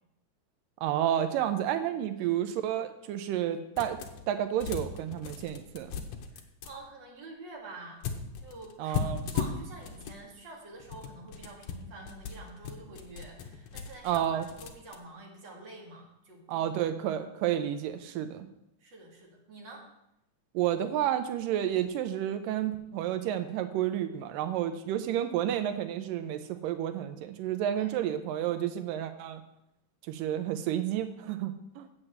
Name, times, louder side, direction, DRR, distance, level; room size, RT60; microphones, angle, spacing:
voice 1, 0.8-4.0 4.3-5.9 8.8-9.3 14.0-14.5 16.5-18.5 20.5-29.4 30.1-31.9, right 11 dB, 90° right, 9 dB, 2.3 m, -31 dB
sound 1, 3.8-4.3 4.6-6.7 8.0-10.2 10.7-15.0, left 6 dB, 70° left, 1.6 m, -37 dB
voice 2, 6.3-8.1 8.4-16.9 18.8-19.8 27.7-28.0, right 2 dB, 40° right, -1 dB, 2.3 m, -48 dB
8.0 x 5.9 x 7.7 m, 0.84 s
omnidirectional pair, 3.9 m